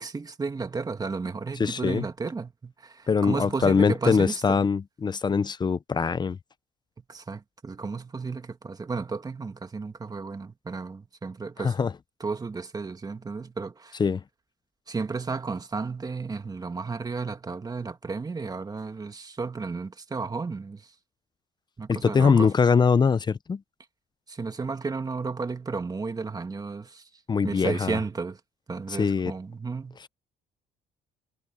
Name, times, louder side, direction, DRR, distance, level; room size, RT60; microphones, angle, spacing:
voice 1, 0.0-4.6 7.1-11.7 12.2-13.9 14.9-20.8 21.8-22.5 24.3-27.0 27.4-28.4 28.7-30.0, right 4 dB, 20° right, 1.9 m, -33 dB
voice 2, 1.6-2.1 3.1-6.4 11.6-11.9 14.0-14.2 21.9-23.6 27.3-28.0 28.9-29.3, left 5 dB, 25° left, 0.7 m, -23 dB
cardioid pair, 110°, 17 cm